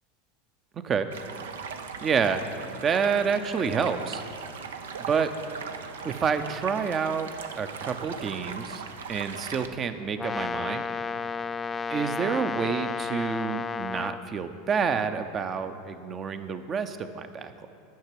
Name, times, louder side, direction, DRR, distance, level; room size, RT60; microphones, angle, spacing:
Stream, 1.1-9.7, right 6 dB, 85° right, 0.6 m, -39 dB
voice 1, 2.0-2.4 2.7-4.2 5.1-5.3 6.0-8.8 9.1-10.9 11.9-17.7, right 6 dB, 35° right, 10 dB, 0.7 m, -28 dB
Brass instrument, 10.2-14.2, left 5 dB, 20° left, 0.3 m, -32 dB
10.5 x 5.9 x 7.5 m, 2.5 s
hypercardioid pair, 95°, 0 cm